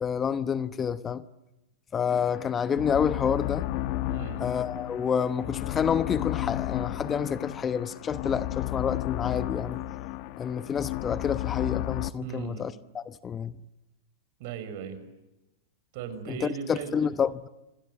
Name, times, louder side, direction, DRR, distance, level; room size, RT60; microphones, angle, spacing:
voice 1, 0.0-1.3 1.9-3.7 4.4-9.8 10.4-13.5 16.3-17.5, left 7 dB, 25° left, 0.9 m, -29 dB
sound 1, 2.1-12.1, left 15 dB, 50° left, 1.1 m, -33 dB
voice 2, 4.1-4.4 12.2-12.7 14.4-15.0 15.9-16.9, right 7 dB, 60° right, 6.2 m, -37 dB
27.0 x 26.5 x 7.9 m
hypercardioid pair, 120°, 0 cm